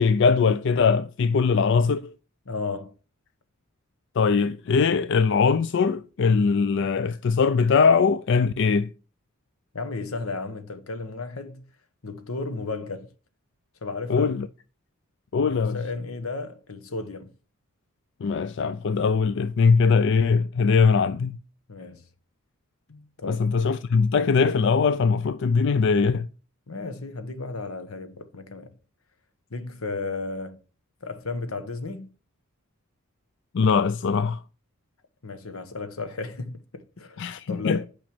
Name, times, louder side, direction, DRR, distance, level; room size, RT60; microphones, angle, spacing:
voice 1, 0.0-2.1 4.2-8.9 14.1-14.5 15.3-15.8 18.2-21.4 23.2-26.3 33.5-34.4 37.2-37.9, left 5 dB, 60° left, 0.4 m, -21 dB
voice 2, 2.4-2.9 9.7-11.6 12.0-13.1 13.8-14.4 15.4-17.3 21.7-22.0 22.9-23.5 26.7-28.8 29.5-30.6 31.0-32.1 35.2-37.9, left 3 dB, 85° left, 1.2 m, -34 dB
9.0 x 5.2 x 6.0 m
head